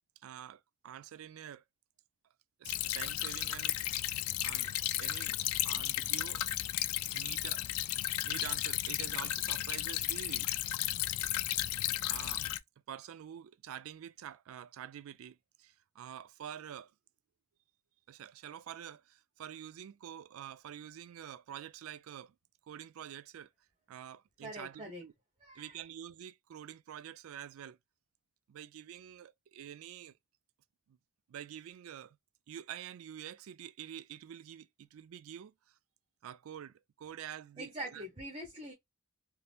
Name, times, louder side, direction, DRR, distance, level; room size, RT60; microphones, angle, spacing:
voice 1, 0.2-1.6 2.6-3.8 4.4-4.7 5.0-6.4 7.1-7.6 8.0-10.5 12.1-12.5 12.9-16.9 18.1-22.3 22.6-23.5 23.9-25.1 25.5-27.8 28.5-30.1 30.9-31.0 31.3-32.2 32.5-35.8 36.2-38.1, right 9 dB, 70° right, 0.3 m, -47 dB
Stream / Trickle dribble, 2.7-12.6, left 14 dB, 85° left, 0.3 m, -34 dB
voice 2, 24.4-25.0 25.4-25.8 37.6-38.7, right 1 dB, 25° right, 0.9 m, -43 dB
3.4 x 2.8 x 2.3 m
head